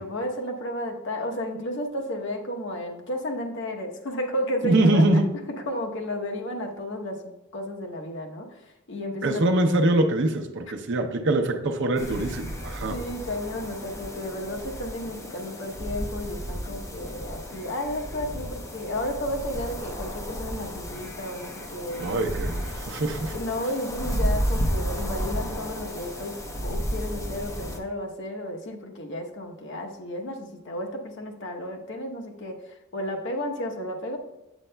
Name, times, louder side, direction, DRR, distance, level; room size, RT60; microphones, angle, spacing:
voice 1, 0.0-5.0 5.7-8.6 8.9-9.4 12.9-22.3 23.3-34.2, left 1 dB, 60° left, 2 dB, 0.9 m, -33 dB
voice 2, 4.6-5.3 9.2-13.0 22.0-23.3, right 1 dB, 55° right, 5 dB, 0.7 m, -23 dB
sound 1, 12.0-27.8, equal, 15° left, 0.6 m, -32 dB
8.1 x 7.7 x 2.2 m, 1.0 s
head